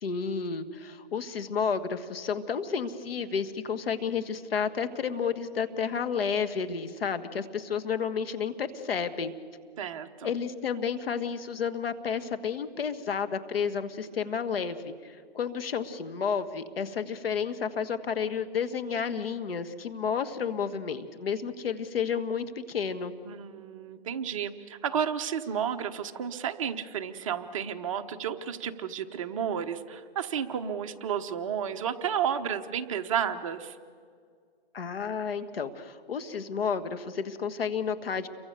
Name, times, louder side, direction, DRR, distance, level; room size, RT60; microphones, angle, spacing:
voice 1, 0.0-9.3 10.2-23.1 34.7-38.3, left 6 dB, 65° left, 10 dB, 1.8 m, -31 dB
voice 2, 9.8-10.3 23.2-33.8, right 8 dB, 30° right, 7 dB, 1.0 m, -32 dB
29.5 x 23.5 x 6.9 m, 2.1 s
hypercardioid pair, 160°, 31 cm